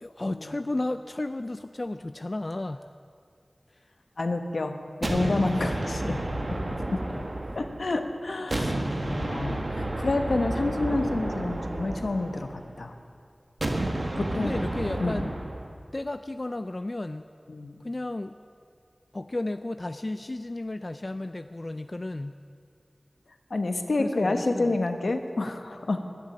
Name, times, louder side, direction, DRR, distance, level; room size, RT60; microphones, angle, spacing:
voice 1, 0.0-2.9 7.1-7.3 8.5-9.2 14.4-15.3 15.9-17.3 17.8-18.4 19.1-22.4 24.0-24.8, left 2 dB, 45° left, 10 dB, 0.4 m, -33 dB
voice 2, 4.2-6.2 6.5-6.6 6.9-7.0 7.5-12.9 14.1-14.5 15.0-15.3 17.5-17.8 23.5-26.0, left 2 dB, 80° left, 7 dB, 1.1 m, -29 dB
sound 1, 5.0-8.0 8.5-12.8 13.6-15.7, right 1 dB, 60° right, 1.6 m, -31 dB
12.5 x 10.5 x 9.9 m, 2.3 s
wide cardioid pair, 50°, 0 cm